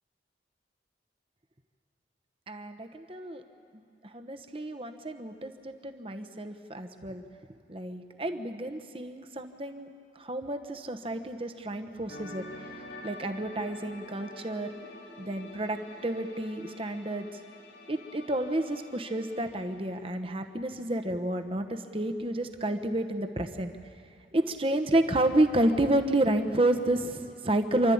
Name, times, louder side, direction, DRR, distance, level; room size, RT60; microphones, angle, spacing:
voice 1, 2.5-3.4 3.7-7.2 7.7-9.9 10.2-12.4 13.0-14.7 15.2-17.3 17.9-23.7 24.3-27.9, right 1 dB, 30° right, 6 dB, 1.0 m, -30 dB
sound 1, 12.1-20.8 21.0-21.3, left 1 dB, 75° left, 3.4 m, -48 dB
28.5 x 12.5 x 8.7 m, 2.8 s
head